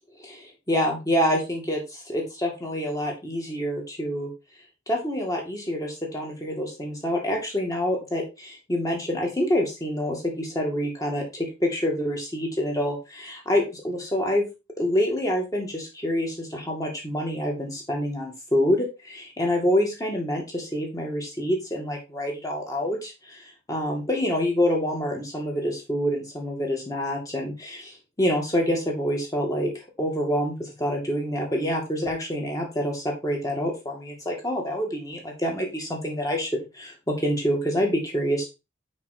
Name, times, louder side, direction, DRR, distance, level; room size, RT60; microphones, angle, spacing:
voice 1, 0.2-4.3 4.9-14.5 14.8-38.5, equal, 15° left, 0 dB, 2.1 m, -27 dB
5.9 x 5.4 x 4.3 m, 0.26 s
head